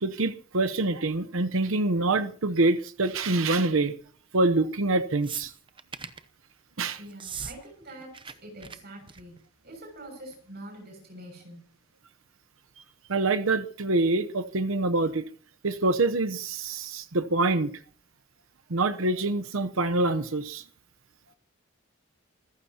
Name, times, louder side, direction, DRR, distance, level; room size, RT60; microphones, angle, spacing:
voice 1, 0.0-3.9 4.3-5.5 6.8-7.0 13.1-15.3 15.6-17.7 18.7-20.6, right 2 dB, 70° right, 0.9 m, -25 dB
sound 1, 5.2-6.2 7.1-7.6 7.8-8.3 8.6-8.8 9.1-9.4 10.3-10.4, right 7 dB, 25° right, 0.8 m, -38 dB
voice 2, 7.0-11.7, right 1 dB, 50° right, 6.5 m, -45 dB
26.5 x 15.0 x 2.9 m
head